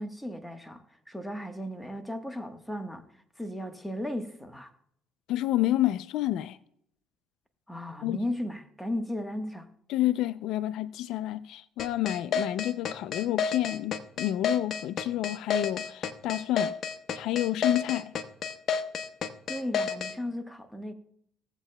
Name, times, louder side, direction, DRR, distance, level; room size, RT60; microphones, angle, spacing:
voice 1, 0.0-3.1 3.4-4.7 7.7-9.7 19.5-20.9, left 1 dB, 5° left, 1.2 m, -35 dB
voice 2, 5.3-6.6 8.0-8.2 9.9-16.7 17.1-18.1, left 14 dB, 75° left, 0.4 m, -29 dB
sound 1, 11.8-20.1, left 6 dB, 50° left, 0.9 m, -30 dB
17.0 x 8.1 x 2.2 m
supercardioid pair, 90°, 0 cm